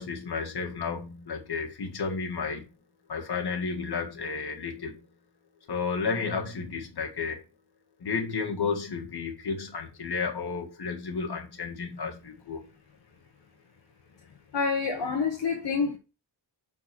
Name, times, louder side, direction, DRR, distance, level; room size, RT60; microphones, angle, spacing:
voice 1, 0.0-2.6 3.1-5.1 5.7-7.4 8.0-12.7, left 5 dB, 60° left, 1.9 m, -32 dB
voice 2, 14.5-16.0, left 5 dB, 75° left, 1.3 m, -27 dB
6.2 x 4.5 x 5.9 m
wide cardioid pair, 170°, 43 cm